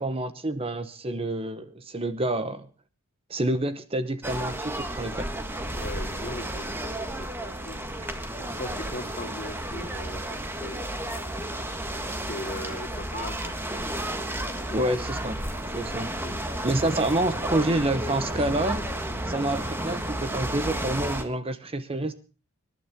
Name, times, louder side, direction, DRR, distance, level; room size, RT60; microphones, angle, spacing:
voice 1, 0.0-2.7 3.3-5.3 14.7-15.3 15.7-16.1 16.6-18.9 19.3-22.1, right 1 dB, 25° right, 1.0 m, -28 dB
sound 1, 4.2-21.2, right 1 dB, 10° right, 1.6 m, -32 dB
voice 2, 5.7-7.9 8.4-10.9 11.9-13.8 14.5-15.0, left 1 dB, 40° left, 2.8 m, -40 dB
26.0 x 11.5 x 3.6 m
head